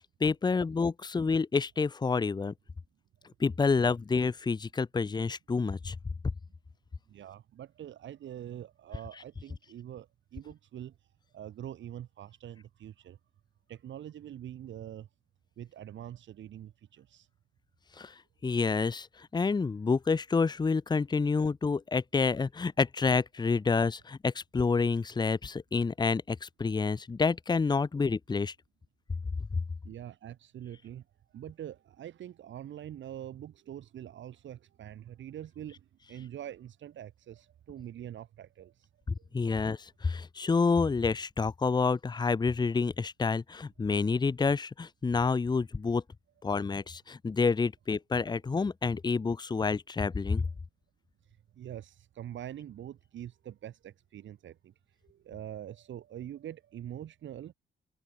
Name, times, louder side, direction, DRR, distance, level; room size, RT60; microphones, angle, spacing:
voice 1, 0.2-2.5 3.4-5.9 18.0-18.1 18.4-19.1 19.3-28.5 39.3-46.0 46.4-50.4, left 4 dB, 20° left, 0.8 m, -28 dB
voice 2, 7.1-11.0 11.3-13.2 13.7-15.1 15.6-17.3 29.8-31.0 31.3-38.9 39.2-39.3 51.5-54.7 55.0-57.5, right 11 dB, 70° right, 6.0 m, -44 dB
cardioid pair, 90°, 20 cm